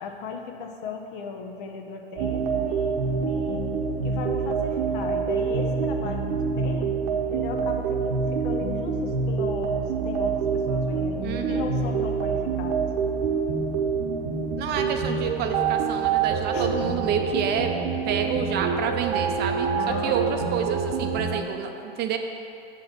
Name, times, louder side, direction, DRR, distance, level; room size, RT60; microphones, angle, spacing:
voice 1, 0.0-3.7 4.0-6.2 6.5-6.9 7.3-11.2 11.5-12.9 16.5-16.7 19.7-20.6, left 5 dB, 60° left, 3 dB, 1.0 m, -36 dB
sound 1, 2.2-21.4, right 5 dB, 60° right, 1.0 m, -26 dB
voice 2, 11.2-11.6 14.6-17.7 18.1-19.7 20.0-22.2, right 7 dB, 35° right, 5 dB, 0.6 m, -29 dB
7.3 x 4.1 x 6.7 m, 2.6 s
hypercardioid pair, 115°, 29 cm